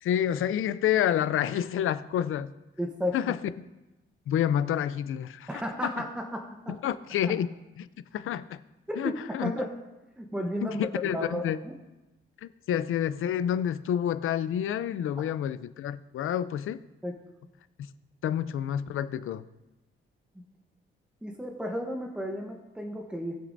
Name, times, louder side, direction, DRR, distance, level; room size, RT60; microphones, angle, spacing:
voice 1, 0.0-2.5 3.1-3.4 4.3-5.5 5.8-5.9 6.7-7.5 7.8-7.9 8.1-8.6 9.0-9.5 10.6-11.6 12.4-16.8 18.2-19.4, left 10 dB, 75° left, 14 dB, 0.5 m, -28 dB
voice 2, 2.8-3.2 5.5-6.7 8.9-9.1 9.4-9.7 10.2-11.7 17.0-17.1 21.2-23.3, equal, 5° right, 2 dB, 0.9 m, -33 dB
19.5 x 6.6 x 2.6 m, 1.0 s
wide cardioid pair, 150°, 21 cm